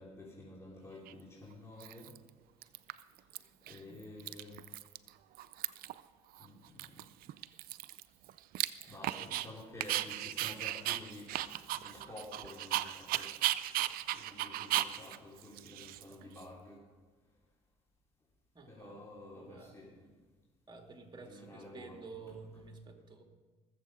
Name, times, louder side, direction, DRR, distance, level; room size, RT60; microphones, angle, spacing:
voice 1, 0.0-2.1 3.7-4.6 6.4-7.0 8.8-11.5 11.8-13.3 14.1-16.8 18.7-20.1 21.2-22.0, left 2 dB, 15° left, -5 dB, 3.7 m, -50 dB
Dog, 1.1-1.2 1.8-2.3 2.6-3.4 3.7-3.8 4.0-5.1 5.4-6.0 6.4-6.5 6.8-9.5 9.8-16.4, right 14 dB, 65° right, 0.5 m, -36 dB
voice 2, 9.0-9.6 16.0-16.3 18.5-19.0 19.3-19.8 20.7-23.2, right 4 dB, 30° right, 3 dB, 2.5 m, -51 dB
21.5 x 7.5 x 5.0 m, 1.3 s
supercardioid pair, 65°, 16 cm